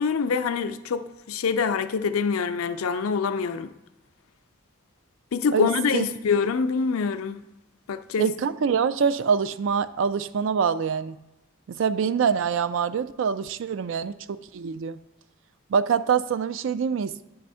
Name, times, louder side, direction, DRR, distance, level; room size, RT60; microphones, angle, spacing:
voice 1, 0.0-3.7 5.3-7.4 7.9-8.3, left 5 dB, 85° left, 0.4 m, -25 dB
voice 2, 5.5-6.0 8.2-11.2 11.8-14.1 14.5-15.0 15.7-17.2, right 6 dB, 65° right, 0.3 m, -25 dB
9.3 x 3.4 x 5.5 m
head